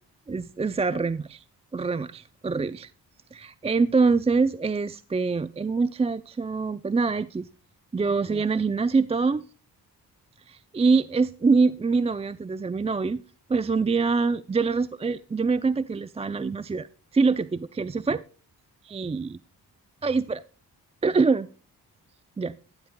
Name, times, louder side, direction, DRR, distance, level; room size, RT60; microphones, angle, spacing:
voice 1, 0.3-1.4 1.7-2.9 3.3-7.5 7.9-9.4 10.5-13.2 13.5-16.9 17.1-18.2 18.9-19.4 20.0-20.4 21.0-21.5 22.4-22.6, right 4 dB, 15° right, 0.4 m, -24 dB
12.5 x 12.0 x 2.2 m
supercardioid pair, 45°, 41 cm